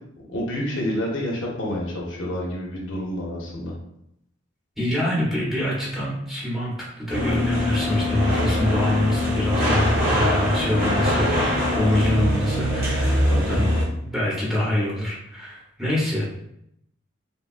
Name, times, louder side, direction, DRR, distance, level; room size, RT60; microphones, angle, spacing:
voice 1, 0.2-3.7 13.3-13.7, equal, 70° left, -2 dB, 0.7 m, -29 dB
voice 2, 4.8-11.3 11.7-16.2, left 1 dB, ahead, -6 dB, 0.8 m, -25 dB
sound 1, 7.1-13.8, left 1 dB, 55° right, 1.1 m, -23 dB
3.3 x 2.2 x 2.4 m, 0.76 s
head